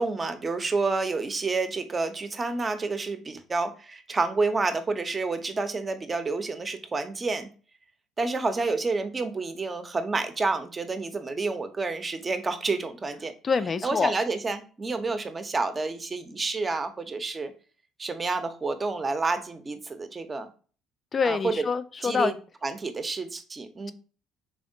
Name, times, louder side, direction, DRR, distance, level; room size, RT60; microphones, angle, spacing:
voice 1, 0.0-7.5 8.2-13.3 13.8-17.5 18.0-20.5 21.2-21.5 22.0-22.3 22.6-23.9, right 3 dB, 25° right, 9 dB, 0.6 m, -29 dB
voice 2, 13.4-14.1 21.1-22.3, left 5 dB, 35° left, 13 dB, 0.3 m, -26 dB
3.5 x 3.4 x 2.6 m, 0.38 s
figure-of-eight pair, 55°, 0 cm